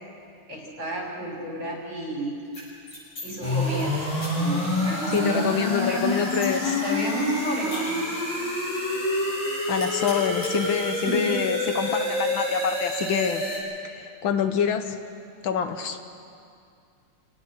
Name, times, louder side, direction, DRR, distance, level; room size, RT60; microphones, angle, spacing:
voice 1, 0.5-2.5 3.2-4.0 4.3-6.0 6.6-7.9 11.0-11.3, equal, 60° right, -2 dB, 6.6 m, -32 dB
sound 1, 2.4-3.2 3.6-3.8 4.2-4.3 4.7-4.8 5.1-6.6 7.0-8.4 8.7-8.8 9.2-9.4 9.7-10.5, left 1 dB, 90° left, 8.8 m, -41 dB
sound 2, 3.4-13.6, left 1 dB, 15° left, 6.0 m, -27 dB
voice 2, 5.1-6.8 9.7-13.4 13.8-15.0 15.4-16.0, left 7 dB, 70° left, 8 dB, 1.7 m, -26 dB
28.5 x 18.5 x 6.5 m, 2.4 s
omnidirectional pair, 2.4 m